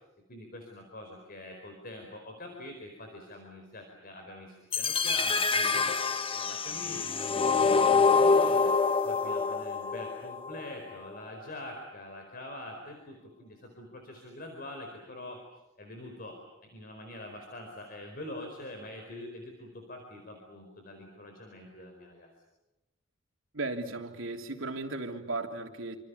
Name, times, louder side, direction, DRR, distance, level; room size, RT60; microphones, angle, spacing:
voice 1, 0.3-5.9 6.3-7.3 7.6-8.7 9.0-15.4 15.8-22.3, left 1 dB, 45° left, 3 dB, 4.7 m, -44 dB
sound 1, 4.7-10.7, left 4 dB, 25° left, 0.9 m, -26 dB
voice 2, 23.5-26.0, right 2 dB, 75° right, 3 dB, 3.3 m, -36 dB
28.0 x 26.5 x 7.0 m, 1.0 s
head